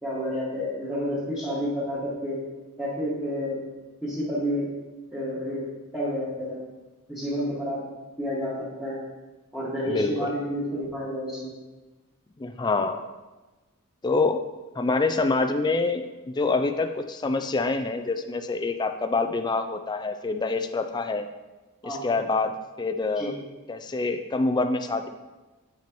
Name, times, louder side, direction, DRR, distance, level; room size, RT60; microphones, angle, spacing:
voice 1, 0.0-2.4 2.8-3.6 4.0-4.7 5.1-5.6 5.9-6.6 7.1-7.8 8.2-9.0 9.5-11.5 21.8-22.1 23.1-23.3, equal, ahead, -12 dB, 1.7 m, -30 dB
voice 2, 12.4-13.0 14.0-14.4 14.8-21.3 21.8-22.5 22.8-23.3 23.7-25.1, left 3 dB, 20° left, 7 dB, 0.3 m, -26 dB
8.5 x 5.9 x 3.0 m, 1.2 s
head